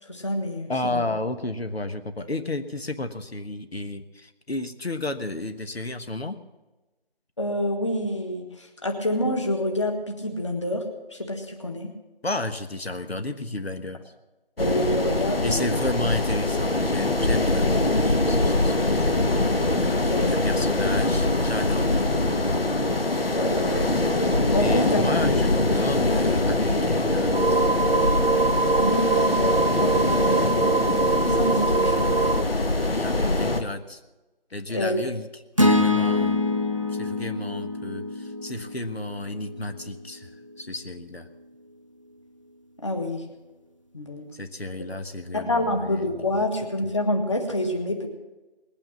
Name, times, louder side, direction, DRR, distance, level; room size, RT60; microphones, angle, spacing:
voice 1, 0.0-1.1 2.2-2.3 7.4-10.8 11.1-11.9 14.6-15.9 20.1-20.7 23.3-24.0 24.5-25.0 28.7-30.7 31.3-32.2 34.7-35.1 42.8-43.2 43.9-44.3 45.3-48.1, left 1 dB, 30° left, 3 dB, 1.6 m, -27 dB
voice 2, 0.7-6.4 12.2-14.0 15.4-19.2 19.7-21.9 24.5-27.6 32.8-34.0 34.5-35.3 35.6-36.4 36.9-40.3 40.6-41.3 44.3-46.0 46.3-46.4, left 2 dB, 85° left, 8 dB, 1.3 m, -32 dB
sound 1, 14.6-33.6, left 2 dB, 70° left, 1.6 m, -23 dB
sound 2, 27.3-32.4, right 4 dB, 70° right, 0.9 m, -24 dB
sound 3, 35.6-39.8, left 2 dB, 35° right, 0.6 m, -25 dB
20.0 x 8.9 x 7.3 m, 1.1 s
figure-of-eight pair, 170°, 30 cm